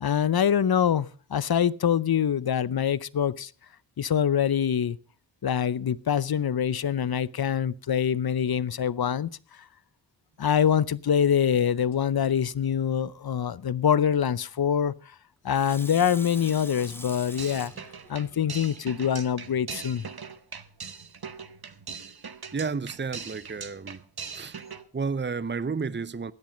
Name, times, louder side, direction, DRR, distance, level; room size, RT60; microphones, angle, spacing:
voice 1, 0.0-3.5 4.0-5.0 5.4-9.3 10.4-14.9 15.4-17.7 18.1-20.1, left 8 dB, 60° left, 0.7 m, -25 dB
Water tap faucet / Sink (filling or washing), 15.5-19.3 19.8-19.9, left 1 dB, 5° left, 1.2 m, -44 dB
sound 1, 17.4-24.8, right 6 dB, 60° right, 1.3 m, -41 dB
voice 2, 22.5-24.0 24.3-24.6 24.9-26.3, right 5 dB, 25° right, 0.8 m, -31 dB
16.5 x 10.5 x 5.1 m
cardioid pair, 55°, 43 cm